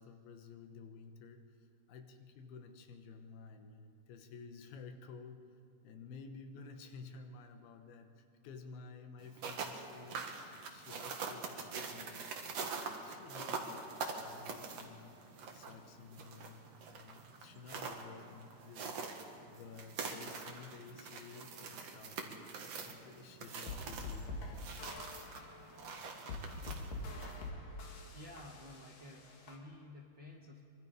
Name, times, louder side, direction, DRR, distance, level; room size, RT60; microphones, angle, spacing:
voice 1, 0.0-5.4 5.8-12.3 13.0-15.2 15.5-22.4 22.7-24.7, left 5 dB, 80° left, 6 dB, 3.1 m, -53 dB
sound 1, 9.2-27.5, right 4 dB, 50° right, 2.3 m, -45 dB
sound 2, 23.7-29.6, left 2 dB, 65° left, 3.7 m, -45 dB
voice 2, 28.1-30.6, left 1 dB, 70° right, 1 dB, 1.0 m, -52 dB
24.5 x 23.0 x 5.1 m, 2.7 s
omnidirectional pair, 4.3 m